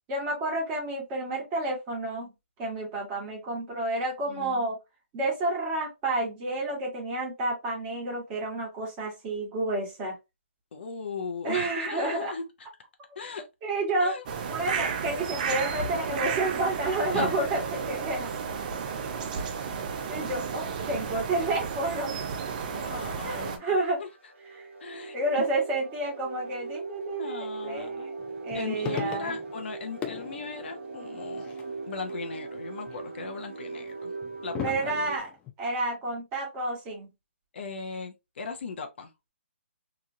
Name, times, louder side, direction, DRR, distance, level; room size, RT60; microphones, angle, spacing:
voice 1, 0.1-2.3 2.6-4.8 5.1-10.1 11.4-12.3 13.6-14.1 14.5-17.6 17.9-18.3 20.1-22.1 23.2-24.0 24.5-24.7 25.1-28.2 28.4-29.4 34.6-35.3 35.6-37.1, right 2 dB, 20° right, 1.3 m, -30 dB
voice 2, 4.3-4.7 10.7-12.4 13.2-13.4 14.0-14.2 17.1-17.4 22.7-23.7 24.0-24.1 24.8-25.2 27.2-28.2 28.5-31.5 31.9-34.1 34.4-35.1 37.5-39.1, left 4 dB, 55° left, 0.6 m, -37 dB
sound 1, 14.3-23.6, right 6 dB, 40° right, 0.5 m, -33 dB
sound 2, 23.6-35.2, right 3 dB, 65° right, 1.1 m, -40 dB
sound 3, 28.2-29.7 30.0-32.1 32.5-33.1 33.9-35.5, left 10 dB, 15° left, 0.3 m, -39 dB
2.9 x 2.4 x 2.6 m
hypercardioid pair, 155°, 7 cm